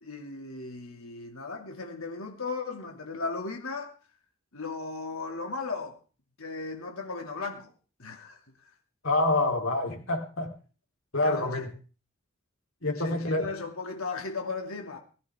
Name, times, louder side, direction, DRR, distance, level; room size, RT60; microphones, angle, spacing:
voice 1, 0.0-3.9 4.5-6.0 6.4-7.7 8.0-8.4 11.2-11.6 12.9-15.0, left 4 dB, 90° left, 2.6 m, -36 dB
voice 2, 9.0-10.5 11.1-11.7 12.8-13.5, left 2 dB, 70° left, 3.7 m, -27 dB
20.0 x 15.0 x 3.7 m
head